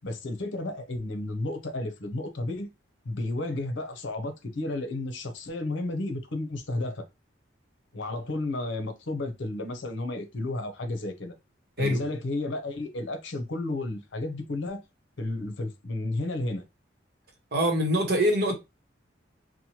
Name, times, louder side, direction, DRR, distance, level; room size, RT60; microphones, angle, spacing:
voice 1, 0.0-2.7 3.0-7.0 7.9-11.3 11.8-14.8 15.2-16.6, left 2 dB, 75° left, 0.7 m, -32 dB
voice 2, 17.5-18.5, equal, 50° right, 0.9 m, -24 dB
3.0 x 2.1 x 2.8 m
head